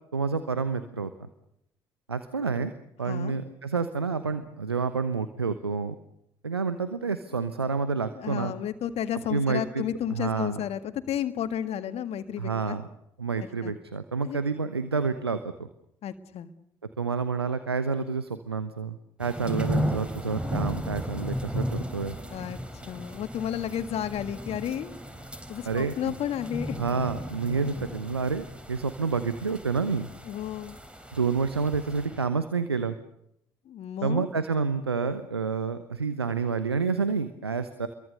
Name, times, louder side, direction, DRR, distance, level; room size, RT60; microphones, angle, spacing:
voice 1, 0.1-1.3 2.1-2.7 3.0-5.9 6.4-8.5 9.3-9.8 10.1-10.6 12.4-12.8 13.2-15.7 17.0-22.2 25.6-26.2 26.8-30.1 31.1-33.0 34.0-37.9, right 5 dB, 90° right, 11 dB, 1.0 m, -29 dB
voice 2, 3.1-3.4 8.1-12.8 13.4-13.7 14.2-14.4 16.0-16.5 22.3-22.6 22.8-25.0 25.5-26.8 30.3-30.8 33.7-34.3, left 10 dB, 55° left, 10 dB, 1.8 m, -32 dB
sound 1, 19.2-32.3, equal, 10° right, 4.0 m, -35 dB
29.5 x 23.0 x 6.6 m, 0.78 s
figure-of-eight pair, 45°, 13 cm